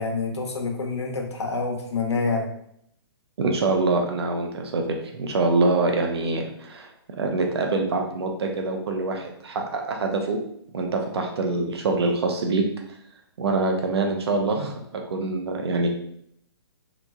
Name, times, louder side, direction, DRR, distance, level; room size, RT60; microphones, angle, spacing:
voice 1, 0.0-2.5, left 4 dB, 90° left, 2 dB, 0.9 m, -27 dB
voice 2, 3.4-4.8 5.2-6.9 7.2-10.4 10.7-12.6 13.4-15.9, right 3 dB, 70° right, 2 dB, 0.6 m, -25 dB
3.9 x 2.9 x 2.3 m, 0.70 s
hypercardioid pair, 145°, 14 cm